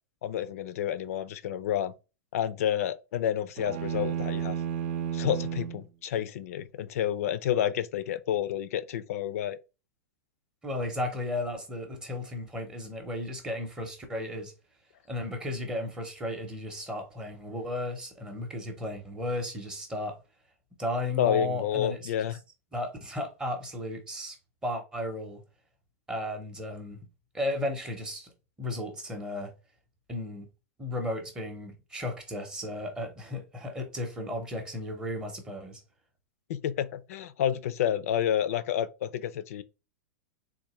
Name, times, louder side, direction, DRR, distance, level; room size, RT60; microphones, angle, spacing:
voice 1, 0.2-1.9 2.3-4.6 5.1-9.6 21.2-22.4 36.5-39.6, left 10 dB, 70° left, 0.4 m, -29 dB
sound 1, 3.6-5.8, right 9 dB, 45° right, 0.4 m, -32 dB
voice 2, 10.6-14.5 15.1-20.2 20.8-22.1 22.7-24.4 24.6-25.4 26.1-27.0 27.3-28.3 28.6-29.5 30.1-30.5 30.8-35.8, left 1 dB, 10° right, 0.6 m, -34 dB
3.6 x 2.6 x 2.9 m
supercardioid pair, 160°, 8 cm